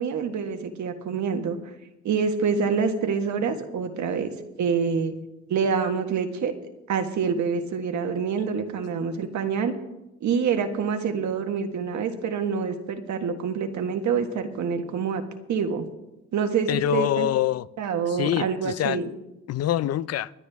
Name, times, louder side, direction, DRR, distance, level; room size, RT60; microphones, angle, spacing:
voice 1, 0.0-1.6 2.0-4.3 4.6-5.1 5.5-6.5 6.9-9.7 10.2-15.2 15.5-15.9 16.3-17.3 17.8-19.1, right 6 dB, 70° right, 1.6 m, -26 dB
voice 2, 16.7-17.6 18.1-19.0 19.5-20.3, left 12 dB, 55° left, 0.5 m, -25 dB
24.0 x 9.6 x 3.5 m
cardioid pair, 90°, 30 cm